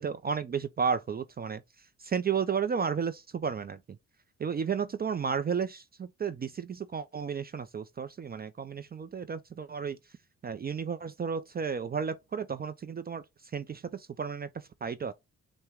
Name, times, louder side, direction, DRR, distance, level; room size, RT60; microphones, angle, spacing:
voice 1, 0.0-1.6 2.0-3.8 4.4-10.0 10.4-13.2 13.5-15.1, right 6 dB, 35° right, 0.4 m, -33 dB
5.6 x 2.1 x 3.5 m
cardioid pair, 120°, 29 cm